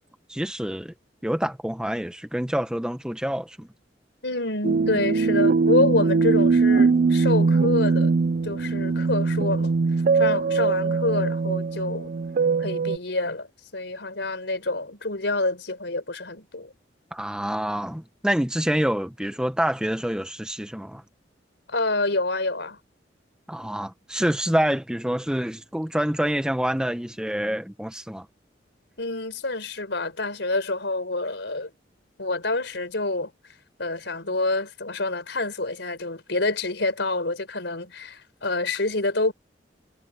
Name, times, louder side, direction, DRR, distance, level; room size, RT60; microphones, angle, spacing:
voice 1, 0.3-0.9 1.2-3.7 17.1-21.0 23.5-28.3, equal, 5° right, 0.9 m, -27 dB
voice 2, 4.2-8.2 8.4-9.7 10.1-12.1 12.6-13.5 13.7-16.7 21.7-22.8 29.0-31.7 32.2-33.3 33.8-39.3, left 2 dB, 75° left, 4.9 m, -27 dB
sound 1, 4.6-13.0, right 4 dB, 50° right, 0.4 m, -21 dB
head